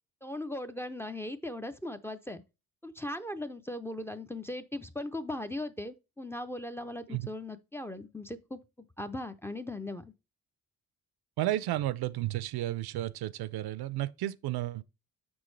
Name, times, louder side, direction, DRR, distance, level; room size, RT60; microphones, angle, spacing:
voice 1, 0.2-2.4 2.8-10.1, left 1 dB, 5° left, 0.4 m, -38 dB
voice 2, 11.4-14.8, right 15 dB, 90° right, 0.6 m, -32 dB
7.0 x 6.2 x 3.2 m
cardioid pair, 155°, 37 cm